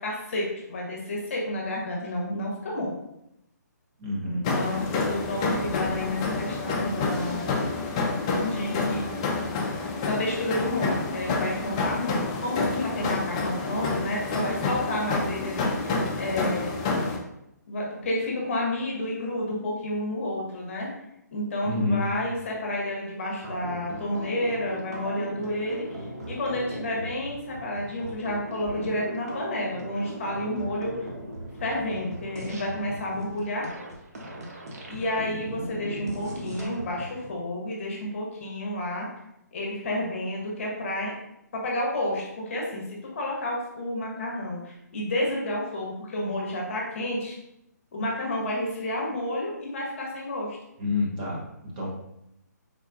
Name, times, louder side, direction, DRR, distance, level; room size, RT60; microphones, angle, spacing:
voice 1, 0.0-2.9 4.2-4.8 5.1-7.4 8.4-9.0 10.0-16.7 17.7-20.9 21.3-30.9 31.6-33.7 34.9-39.1 39.5-41.1 41.5-47.4 47.9-50.6, left 1 dB, 45° left, -3 dB, 0.8 m, -30 dB
voice 2, 4.0-4.4 21.6-22.1 50.8-51.4 51.7-51.9, left 2 dB, 30° right, -5 dB, 0.8 m, -27 dB
sound 1, 4.4-17.2, left 3 dB, 20° left, 0.3 m, -28 dB
sound 2, 23.4-37.3, right 1 dB, 55° right, 0.7 m, -39 dB
3.8 x 2.3 x 2.4 m, 0.83 s
figure-of-eight pair, 140°, 10 cm